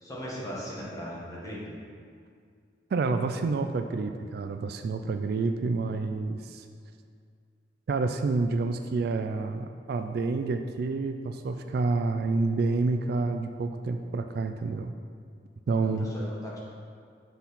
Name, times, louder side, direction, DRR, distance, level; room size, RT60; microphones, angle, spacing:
voice 1, 0.0-1.8 15.7-16.6, equal, 20° left, -6 dB, 1.4 m, -38 dB
voice 2, 2.9-6.7 7.9-14.9 15.7-16.1, right 3 dB, 55° right, 7 dB, 0.3 m, -28 dB
6.2 x 4.0 x 5.7 m, 2.2 s
head